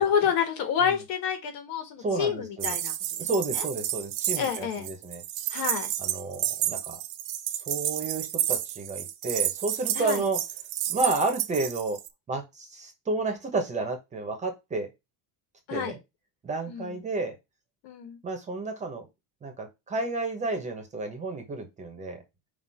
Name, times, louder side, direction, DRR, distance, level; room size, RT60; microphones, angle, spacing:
voice 1, 0.0-2.9 3.2-3.3 3.5-3.6 4.4-4.9 5.5-5.9 9.9-10.2 15.7-15.9 16.7-17.0 17.8-18.2, left 7 dB, 70° left, 7 dB, 1.8 m, -28 dB
voice 2, 2.0-2.8 3.2-5.2 6.0-7.0 7.7-10.4 10.9-12.0 12.3-14.9 15.7-16.0 16.4-17.3 18.2-19.1 19.4-22.2, right 3 dB, 20° right, 4 dB, 1.2 m, -31 dB
sound 1, 2.6-12.1, right 12 dB, 90° right, 0.9 m, -31 dB
6.0 x 2.8 x 5.6 m, 0.22 s
cardioid pair, 175°, 36 cm